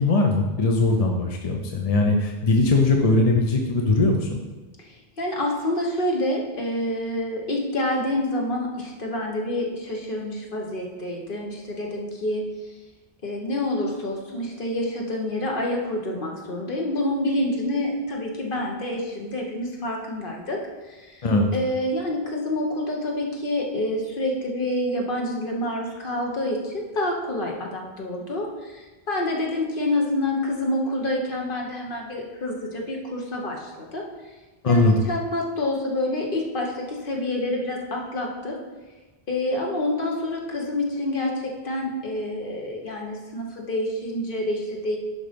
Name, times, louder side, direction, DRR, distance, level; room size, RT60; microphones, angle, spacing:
voice 1, 0.0-4.4 21.2-21.5 34.6-35.0, left 2 dB, 40° left, 2 dB, 0.7 m, -20 dB
voice 2, 4.8-12.4 13.2-20.6 20.8-21.3 21.5-34.0 34.6-38.6 39.3-45.0, left 1 dB, 55° left, 0 dB, 1.5 m, -27 dB
10.5 x 3.9 x 5.2 m, 1.2 s
omnidirectional pair, 1.1 m